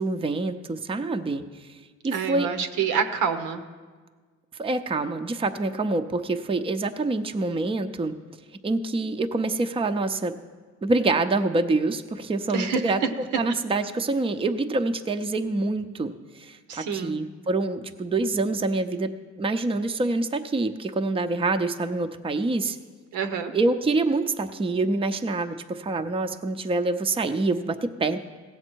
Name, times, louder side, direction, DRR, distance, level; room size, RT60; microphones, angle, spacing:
voice 1, 0.0-1.7 2.0-2.5 4.6-8.1 8.6-10.4 10.8-22.8 23.5-28.2, right 3 dB, 20° right, 7 dB, 0.5 m, -26 dB
voice 2, 2.1-3.6 12.5-12.9 16.7-17.2 23.1-23.5, right 6 dB, 85° right, 8 dB, 0.9 m, -27 dB
16.5 x 7.2 x 4.5 m, 1.5 s
cardioid pair, 90°, 30 cm